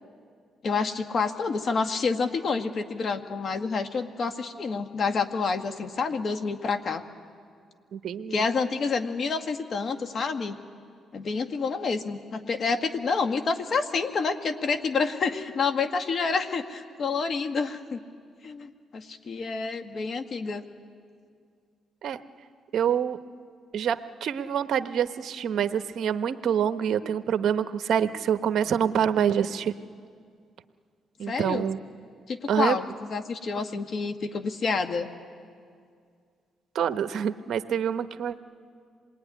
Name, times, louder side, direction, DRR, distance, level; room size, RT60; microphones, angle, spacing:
voice 1, 0.6-7.0 8.3-10.6 11.1-18.0 18.4-20.6 31.2-31.6 32.3-35.1, left 4 dB, 50° left, 7 dB, 1.7 m, -28 dB
voice 2, 7.9-8.4 22.0-22.2 22.7-23.2 23.7-29.7 31.2-31.8 32.5-32.8 36.7-38.4, right 8 dB, 65° right, 10 dB, 0.9 m, -26 dB
26.5 x 20.5 x 10.0 m, 2.2 s
cardioid pair, 90°, 0 cm